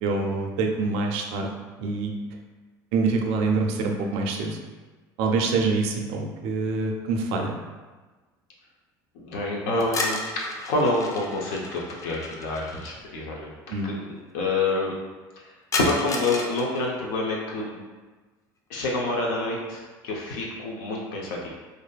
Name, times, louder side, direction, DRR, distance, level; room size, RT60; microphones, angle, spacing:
voice 1, 0.0-1.5 1.8-2.1 2.9-4.6 5.2-7.5 13.7-13.9, right 3 dB, 75° right, 2 dB, 0.4 m, -25 dB
voice 2, 9.1-10.3 10.7-13.5 13.9-15.0 15.7-17.8 18.7-21.5, left 2 dB, 85° left, -3 dB, 0.5 m, -27 dB
sound 1, 9.8-12.9 15.7-16.9, left 2 dB, 35° left, 0.4 m, -32 dB
2.6 x 2.4 x 2.2 m, 1.3 s
supercardioid pair, 95°, 10 cm